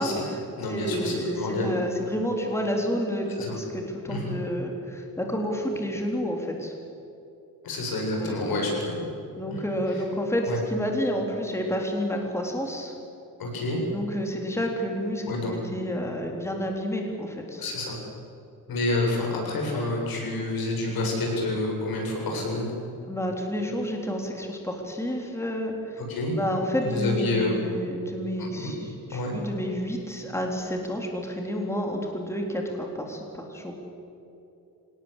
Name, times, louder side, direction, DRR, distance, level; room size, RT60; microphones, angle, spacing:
voice 1, 0.0-0.4 0.7-6.7 8.2-8.3 9.4-12.9 13.9-17.6 23.1-26.0 26.3-33.7, equal, 5° left, 1 dB, 3.8 m, -30 dB
voice 2, 0.6-1.7 3.4-3.6 4.1-4.3 7.6-9.0 9.5-10.0 10.4-10.6 13.4-13.8 15.2-15.5 17.6-18.0 18.7-22.7 26.1-26.3 26.8-27.5 28.4-28.7 29.1-29.3, left 2 dB, 80° left, 0 dB, 7.8 m, -28 dB
26.0 x 19.0 x 8.4 m, 2.9 s
cardioid pair, 115°, 35 cm